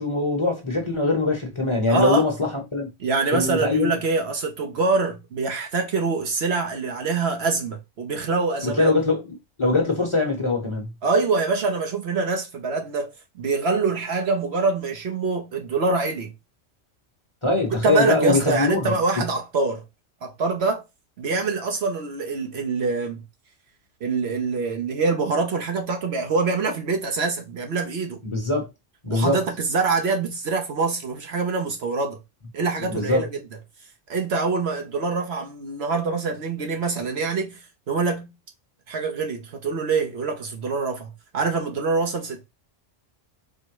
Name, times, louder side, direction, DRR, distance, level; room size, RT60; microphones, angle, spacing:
voice 1, 0.0-2.9 3.3-3.9 8.6-10.9 17.4-19.2 28.2-28.7 29.0-29.4 32.9-33.2, left 3 dB, 25° left, 1.0 m, -22 dB
voice 2, 1.9-2.3 3.0-8.9 11.0-16.3 17.8-19.8 20.2-20.8 21.2-23.2 24.0-28.2 29.1-32.2 32.5-33.4 34.1-38.3 38.9-42.4, right 4 dB, 60° right, 0.9 m, -25 dB
4.5 x 2.1 x 4.6 m
omnidirectional pair, 1.3 m